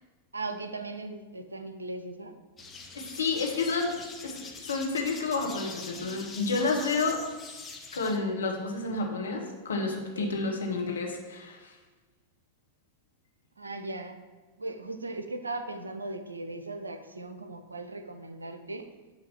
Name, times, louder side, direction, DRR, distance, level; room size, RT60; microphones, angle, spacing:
voice 1, 0.3-2.4 10.1-10.4 13.6-14.2 14.6-18.9, right 2 dB, 80° right, 8 dB, 0.5 m, -38 dB
sound 1, 2.6-8.2, left 4 dB, 20° left, 0.8 m, -44 dB
voice 2, 2.9-4.0 4.2-7.2 7.9-11.8, left 3 dB, 70° left, 1 dB, 1.0 m, -30 dB
8.2 x 2.8 x 5.8 m, 1.3 s
figure-of-eight pair, 90°, 0 cm